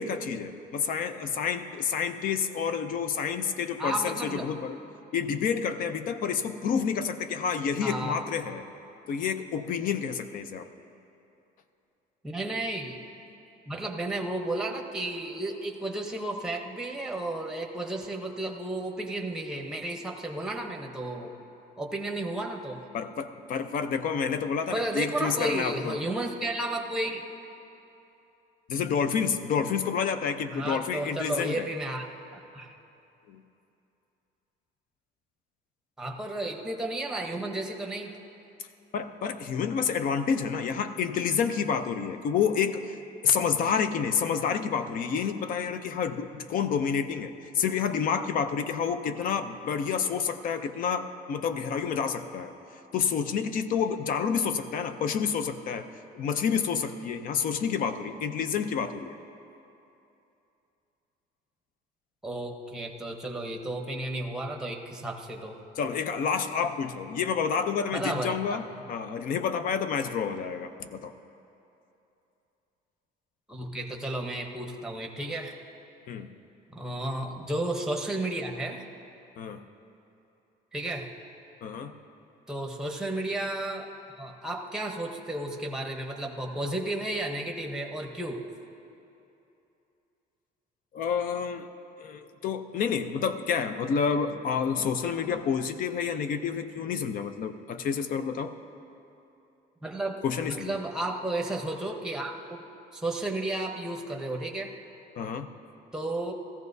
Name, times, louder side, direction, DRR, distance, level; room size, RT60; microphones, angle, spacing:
voice 1, 0.0-4.8 5.1-8.6 9.1-10.7 22.9-26.0 28.7-31.7 33.3-33.4 38.9-43.0 43.2-52.5 52.9-55.9 56.1-59.2 65.8-71.1 76.1-76.3 79.4-79.6 81.6-81.9 90.9-91.7 92.0-98.5 100.2-100.8 105.2-105.5, left 6 dB, 50° left, 9 dB, 0.6 m, -29 dB
voice 2, 3.8-4.5 7.8-8.2 12.2-13.0 13.7-21.3 21.8-22.8 24.7-27.2 30.5-32.1 32.3-32.7 36.0-38.1 62.2-65.6 67.9-68.6 73.5-75.6 76.7-78.8 80.7-81.1 82.5-83.9 84.2-88.4 99.8-102.6 102.9-104.7 105.9-106.4, right 1 dB, 5° right, 2 dB, 0.9 m, -33 dB
17.0 x 14.5 x 2.7 m, 2.8 s
cardioid pair, 160°, 18 cm